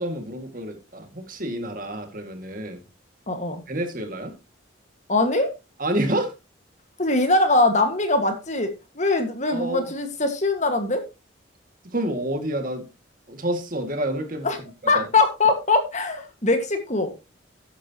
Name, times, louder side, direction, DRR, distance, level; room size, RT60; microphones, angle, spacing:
voice 1, 0.0-2.8 3.7-4.3 5.8-6.3 9.5-9.9 11.9-12.9 13.3-14.5 14.9-15.0, right 1 dB, 45° right, 5 dB, 2.2 m, -28 dB
voice 2, 3.3-3.6 5.1-5.5 7.0-11.0 14.4-14.6 14.9-17.1, left 2 dB, 35° left, 6 dB, 1.8 m, -22 dB
13.0 x 9.9 x 3.0 m, 0.27 s
head